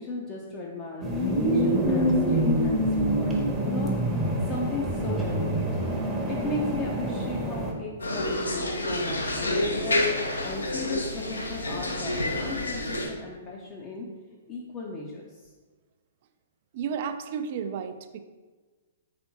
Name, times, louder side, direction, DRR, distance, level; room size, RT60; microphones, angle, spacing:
voice 1, 0.0-3.9 4.5-5.6 6.3-10.0 10.4-14.1 14.5-15.5, left 3 dB, 30° left, -2 dB, 0.5 m, -36 dB
sound 1, 1.0-7.7, right 1 dB, 10° right, 0.7 m, -26 dB
sound 2, 8.0-13.1, left 1 dB, 80° left, 0.7 m, -28 dB
voice 2, 16.7-18.2, right 7 dB, 50° right, 10 dB, 0.3 m, -32 dB
4.2 x 3.4 x 2.8 m, 1.3 s
figure-of-eight pair, 115°, 0 cm